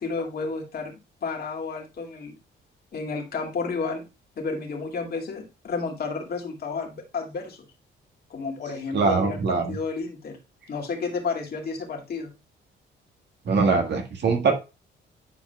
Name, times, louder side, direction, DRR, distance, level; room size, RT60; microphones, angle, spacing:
voice 1, 0.0-2.3 2.9-4.0 4.4-7.6 8.3-10.4 10.7-12.3, left 4 dB, 50° left, 2 dB, 2.3 m, -31 dB
voice 2, 8.9-9.7 13.4-14.5, right 4 dB, 60° right, 4 dB, 1.7 m, -22 dB
9.9 x 4.9 x 2.3 m, 0.27 s
cardioid pair, 90°, 20 cm